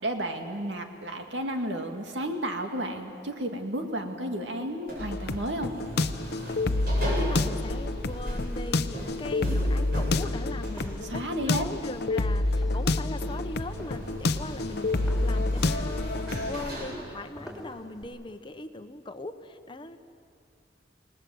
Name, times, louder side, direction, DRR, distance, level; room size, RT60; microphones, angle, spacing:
voice 1, 0.0-5.7 11.0-11.6, right 1 dB, 85° right, 4 dB, 2.3 m, -32 dB
sound 1, 4.9-17.0, right 1 dB, 55° right, 7.7 m, -38 dB
sound 2, 5.0-16.6, left 2 dB, 60° left, 0.7 m, -28 dB
voice 2, 6.6-20.0, left 2 dB, 30° left, 8 dB, 1.0 m, -40 dB
sound 3, 10.0-18.0, equal, 5° right, 3.6 m, -47 dB
28.0 x 19.0 x 8.0 m, 2.4 s
head